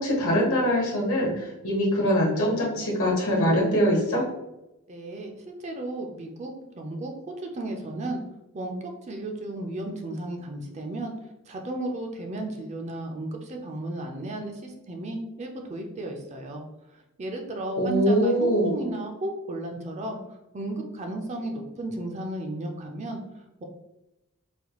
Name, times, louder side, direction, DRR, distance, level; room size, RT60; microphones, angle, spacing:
voice 1, 0.0-4.2 17.8-18.8, equal, 70° left, -2 dB, 1.2 m, -23 dB
voice 2, 4.9-8.2 8.5-11.1 11.5-16.6 16.9-23.6, right 1 dB, 30° right, 3 dB, 0.4 m, -34 dB
4.0 x 2.2 x 2.9 m, 0.93 s
head